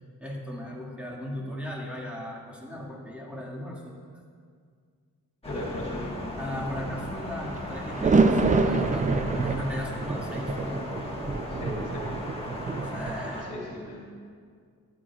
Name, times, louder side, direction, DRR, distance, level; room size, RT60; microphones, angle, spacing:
voice 1, 0.2-4.0 6.4-10.8 12.9-13.5, equal, 5° right, -4 dB, 2.0 m, -37 dB
voice 2, 5.4-6.1 11.5-12.2 13.3-14.1, left 1 dB, 40° left, -5 dB, 2.5 m, -37 dB
Thunder, 5.4-13.4, left 1 dB, 15° left, 1.5 m, -37 dB
sound 1, 7.5-13.1, right 3 dB, 20° right, 0.5 m, -26 dB
15.0 x 11.0 x 2.4 m, 2.1 s
wide cardioid pair, 105°, 37 cm